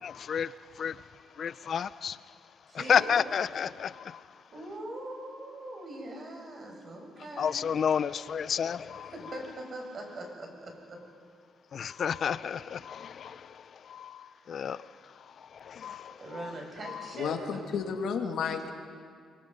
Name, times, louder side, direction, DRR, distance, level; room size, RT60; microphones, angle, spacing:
voice 1, 0.0-4.4 7.4-9.4 11.7-16.5 16.8-17.1, left 7 dB, 55° left, 0.6 m, -32 dB
voice 2, 2.7-3.3 4.5-7.6 9.1-11.0 16.2-17.7, right 1 dB, 45° right, 6.2 m, -41 dB
voice 3, 17.1-18.7, left 6 dB, 75° left, 2.4 m, -32 dB
26.5 x 24.0 x 5.4 m
cardioid pair, 90°, 0 cm